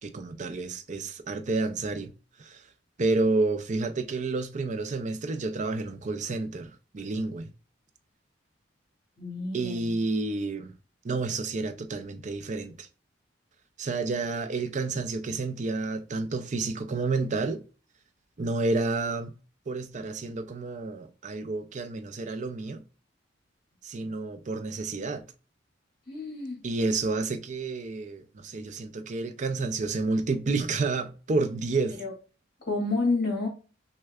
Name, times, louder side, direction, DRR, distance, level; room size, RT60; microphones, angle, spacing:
voice 1, 0.0-2.1 2.4-2.6 3.0-7.5 9.5-10.7 11.0-12.9 13.8-17.6 18.4-19.3 19.7-22.8 23.8-25.2 26.6-32.0, right 3 dB, 40° right, 0.5 m, -30 dB
voice 2, 9.2-10.0 26.1-26.6 32.0-32.1 32.7-33.5, left 3 dB, 55° left, 2.0 m, -29 dB
6.2 x 2.2 x 2.3 m
head